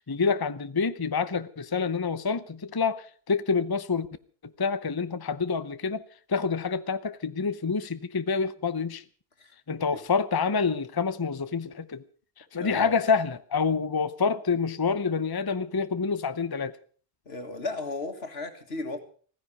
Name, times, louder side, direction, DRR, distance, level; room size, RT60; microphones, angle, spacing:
voice 1, 0.0-4.1 4.4-6.0 6.3-9.0 9.7-12.0 12.4-16.8, left 5 dB, 25° left, 0.7 m, -27 dB
voice 2, 12.5-12.9 17.3-19.0, left 2 dB, 80° left, 2.2 m, -35 dB
16.5 x 15.0 x 5.4 m
omnidirectional pair, 1.0 m